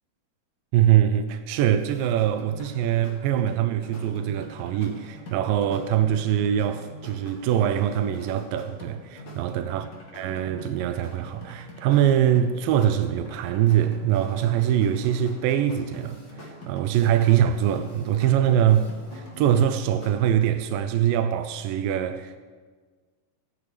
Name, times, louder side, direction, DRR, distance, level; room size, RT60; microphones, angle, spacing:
voice 1, 0.7-9.9 10.1-22.4, right 10 dB, 90° right, 2.3 m, -23 dB
sound 1, 1.8-20.3, equal, 40° left, 2.0 m, -44 dB
16.5 x 11.0 x 3.2 m
omnidirectional pair, 3.9 m